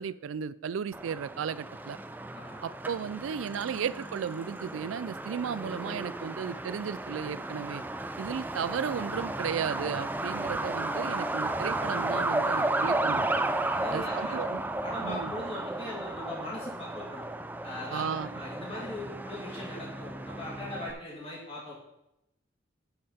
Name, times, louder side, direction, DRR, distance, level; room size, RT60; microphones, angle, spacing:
voice 1, 0.0-2.0 2.6-7.8 8.2-13.3 13.9-14.6 15.0-15.3 17.9-18.4, right 7 dB, 90° right, 17 dB, 0.4 m, -34 dB
Truck, 0.9-20.9, right 2 dB, 10° right, 0.3 m, -33 dB
voice 2, 13.7-14.4 14.8-17.3 17.6-21.7, left 1 dB, 30° left, -5 dB, 2.9 m, -40 dB
11.5 x 5.7 x 4.2 m, 0.85 s
head